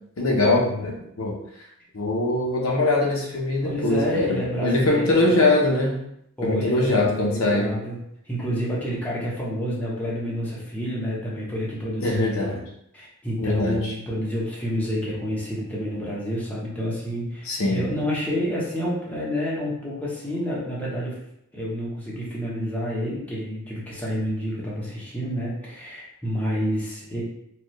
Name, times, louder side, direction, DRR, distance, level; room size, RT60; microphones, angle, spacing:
voice 1, 0.2-1.4 1.9-6.0 6.4-7.7 12.0-12.6 13.4-13.8 17.5-17.9, left 2 dB, 70° left, -2 dB, 0.8 m, -22 dB
voice 2, 3.6-5.4 6.4-8.0 8.2-12.6 12.9-21.2 21.5-27.2, equal, 5° left, -7 dB, 0.9 m, -29 dB
4.3 x 2.4 x 3.1 m, 0.74 s
head